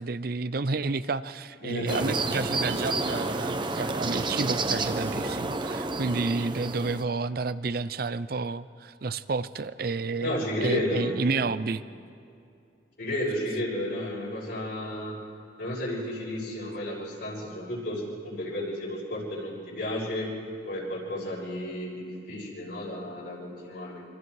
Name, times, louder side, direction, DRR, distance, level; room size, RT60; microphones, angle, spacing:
voice 1, 0.0-11.8, right 3 dB, 55° right, 15 dB, 0.6 m, -30 dB
voice 2, 1.6-2.1 10.2-11.2 13.0-15.2 15.6-20.3 20.6-24.0, left 1 dB, 65° left, -3 dB, 6.4 m, -32 dB
sound 1, 1.9-7.0, right 2 dB, 25° right, 1.0 m, -30 dB
25.5 x 25.5 x 4.8 m, 2.4 s
head